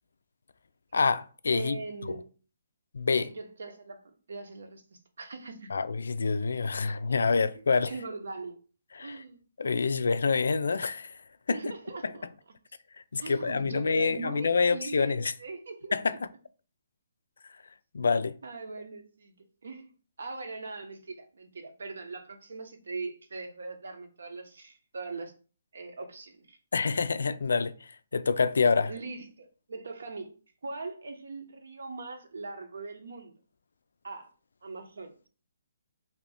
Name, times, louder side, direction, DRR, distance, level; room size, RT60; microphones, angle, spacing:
voice 1, 0.9-1.8 2.1-2.2 2.9-3.3 5.7-7.9 8.9-9.2 9.6-11.2 11.5-11.6 13.1-15.3 15.9-16.1 17.9-18.4 26.7-28.9, left 4 dB, 90° left, 0.3 m, -27 dB
voice 2, 1.5-2.3 3.2-5.7 7.3-8.6 9.0-9.4 11.5-12.3 13.2-16.0 18.0-18.1 18.4-19.9 20.2-25.3 25.7-26.6 28.9-30.3 30.6-33.3 34.0-34.3 34.6-35.1, right 3 dB, 70° right, 0.7 m, -41 dB
2.8 x 2.6 x 3.3 m
hypercardioid pair, 180°, 0 cm